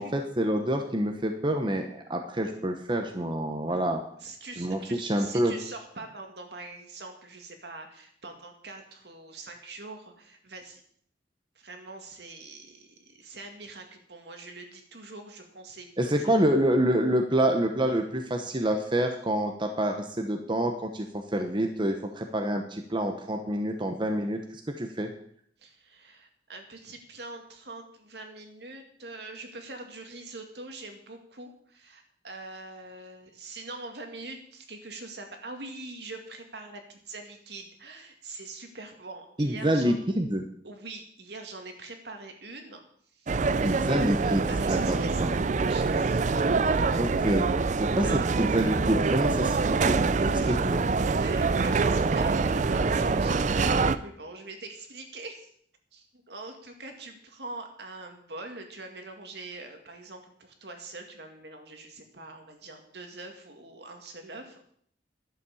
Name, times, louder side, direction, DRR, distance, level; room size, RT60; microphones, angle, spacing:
voice 1, 0.0-4.0 4.6-5.5 16.0-24.4 24.7-25.1 39.4-40.4 43.6-45.3 47.0-47.5 47.8-50.8, right 1 dB, 25° right, 4 dB, 1.0 m, -27 dB
voice 2, 4.2-10.8 11.6-16.4 25.6-40.0 40.6-42.8 43.1-43.8 44.4-46.3 46.9-47.0 48.0-48.3 50.2-50.8 51.1-55.5 55.9-64.7, right 2 dB, 70° right, 4 dB, 2.2 m, -43 dB
sound 1, 43.3-54.0, right 4 dB, 45° right, 0.4 m, -25 dB
11.5 x 7.5 x 7.1 m, 0.64 s
head